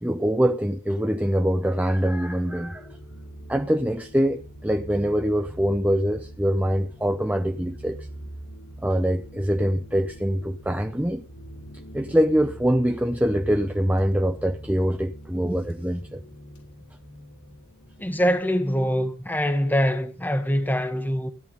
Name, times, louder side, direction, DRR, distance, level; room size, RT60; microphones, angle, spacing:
voice 1, 0.0-2.9 3.5-8.1 8.8-11.2 11.9-16.2, equal, 5° right, 0.6 m, -24 dB
sound 1, 2.2-18.4, right 1 dB, 90° left, 5.7 m, -43 dB
voice 2, 18.0-21.3, equal, 10° left, 1.3 m, -24 dB
16.0 x 11.0 x 5.5 m
head